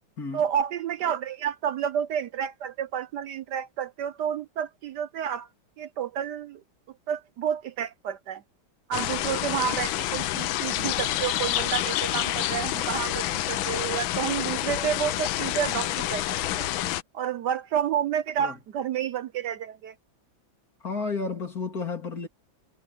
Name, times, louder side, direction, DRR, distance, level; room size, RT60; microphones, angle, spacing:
voice 1, 0.3-5.5 5.8-6.6 7.1-8.4 8.9-16.7 17.1-19.9, right 9 dB, 65° right, 1.2 m, -30 dB
sound 1, 8.9-17.0, left 14 dB, 85° left, 1.5 m, -28 dB
voice 2, 20.8-22.3, left 4 dB, 50° left, 3.8 m, -31 dB
omnidirectional pair, 2.1 m